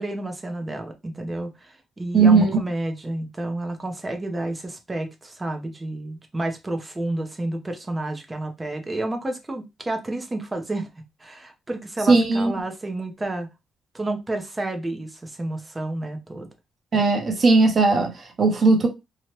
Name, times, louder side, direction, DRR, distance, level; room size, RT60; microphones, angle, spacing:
voice 1, 0.0-10.9 11.2-13.5 13.9-16.5, right 2 dB, 20° right, 0.8 m, -30 dB
voice 2, 2.1-2.6 12.1-12.5 16.9-18.9, right 3 dB, 40° right, 1.0 m, -18 dB
2.9 x 2.4 x 3.2 m
cardioid pair, 90°, 0 cm